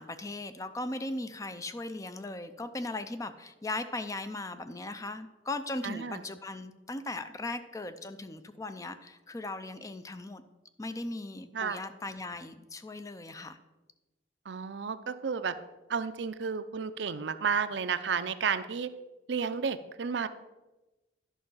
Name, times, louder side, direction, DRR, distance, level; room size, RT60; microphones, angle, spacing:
voice 1, 0.0-10.4 10.8-13.6, left 2 dB, 15° left, 10 dB, 0.4 m, -38 dB
voice 2, 5.8-6.2 11.5-11.8 14.5-15.5 15.9-18.9 19.3-20.3, right 6 dB, 65° right, 12 dB, 0.5 m, -32 dB
11.0 x 5.5 x 5.5 m, 1.1 s
head